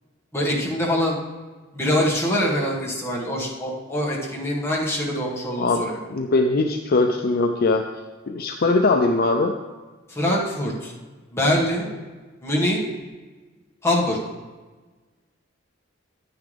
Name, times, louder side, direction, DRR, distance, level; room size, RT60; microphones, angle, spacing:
voice 1, 0.3-1.2 1.7-6.0 10.1-10.9 11.3-11.9 12.4-12.8 13.8-14.2, left 1 dB, 15° left, -4 dB, 1.8 m, -24 dB
voice 2, 6.1-7.9 8.3-9.5, left 3 dB, 50° left, 4 dB, 0.5 m, -20 dB
10.5 x 9.5 x 3.4 m, 1.3 s
head